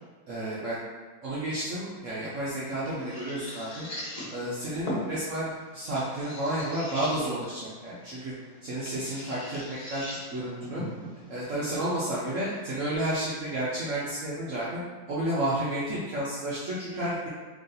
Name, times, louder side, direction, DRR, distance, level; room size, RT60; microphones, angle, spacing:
voice 1, 0.3-0.8 1.2-3.9 4.3-8.3 8.6-10.0 10.3-10.8 11.3-14.8 15.1-17.3, right 1 dB, 75° right, -8 dB, 0.7 m, -31 dB
sound 1, 2.0-13.0, left 1 dB, 65° left, 0.3 m, -41 dB
3.4 x 2.7 x 3.8 m, 1.3 s
omnidirectional pair, 2.1 m